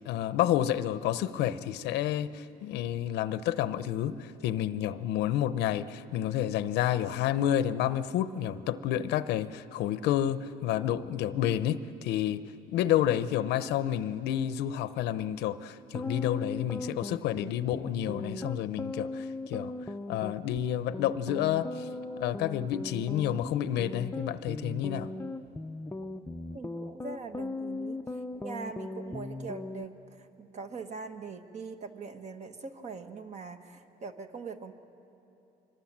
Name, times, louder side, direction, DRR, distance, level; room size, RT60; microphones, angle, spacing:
voice 1, 0.0-19.7 20.1-21.9 22.2-25.1, left 11 dB, 85° left, 14 dB, 0.8 m, -30 dB
sound 1, 15.8-29.9, left 2 dB, 15° left, 0.6 m, -38 dB
voice 2, 26.5-34.7, right 4 dB, 40° right, 7 dB, 1.5 m, -42 dB
25.5 x 22.5 x 7.5 m, 3.0 s
cardioid pair, 110°, 17 cm